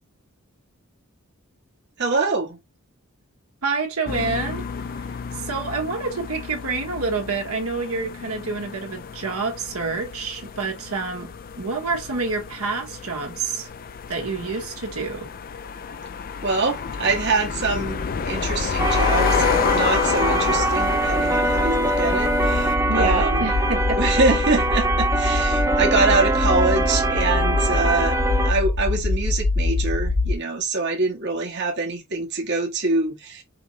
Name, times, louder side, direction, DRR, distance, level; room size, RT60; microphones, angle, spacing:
voice 1, 2.0-2.6 16.4-23.5 23.9-28.2 28.4-33.4, right 3 dB, 55° right, 1.2 m, -24 dB
voice 2, 3.6-4.6 5.3-11.3 11.6-13.7 14.1-15.3 22.9-24.0, right 4 dB, 75° right, 1.3 m, -27 dB
sound 1, 4.1-22.7, left 6 dB, 40° left, 0.4 m, -29 dB
sound 2, 16.9-30.3, left 2 dB, 60° left, 1.1 m, -26 dB
sound 3, 18.8-28.5, right 2 dB, 15° right, 0.6 m, -23 dB
5.1 x 3.1 x 2.7 m
head